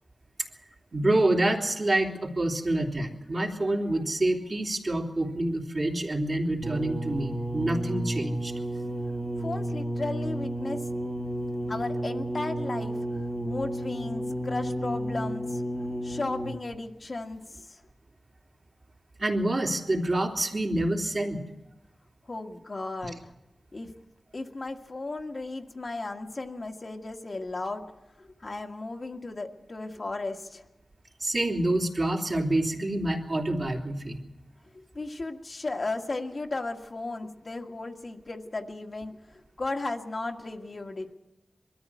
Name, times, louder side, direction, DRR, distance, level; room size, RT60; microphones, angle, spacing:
voice 1, 0.9-8.5 19.2-21.4 31.2-34.2, right 1 dB, 45° right, 0 dB, 3.2 m, -27 dB
sound 1, 6.6-16.7 17.6-17.7, right 1 dB, ahead, 1.6 m, -32 dB
voice 2, 9.4-10.8 11.7-12.9 13.3-15.6 16.0-17.8 22.3-23.3 23.7-23.9 24.3-27.8 28.2-30.6 34.7-41.1, left 2 dB, 50° left, 2 dB, 1.7 m, -35 dB
22.5 x 13.5 x 8.5 m, 0.98 s
wide cardioid pair, 70°, 0 cm